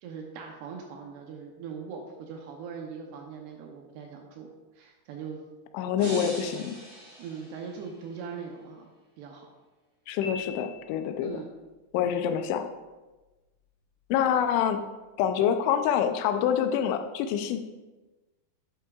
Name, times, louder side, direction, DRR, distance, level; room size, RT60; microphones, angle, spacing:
voice 1, 0.0-4.5 4.8-5.4 6.1-6.3 7.2-8.9 9.2-9.5 11.2-11.5, right 6 dB, 75° right, 2 dB, 2.6 m, -40 dB
voice 2, 5.7-6.7 10.1-11.4 11.9-12.7 14.1-14.8 15.2-17.6, left 9 dB, 85° left, 7 dB, 3.0 m, -26 dB
sound 1, 6.0-8.1, right 1 dB, 30° right, 2.0 m, -42 dB
Piano, 10.2-11.3, left 6 dB, 60° left, 3.9 m, -42 dB
11.0 x 8.3 x 2.4 m, 1.2 s
omnidirectional pair, 5.3 m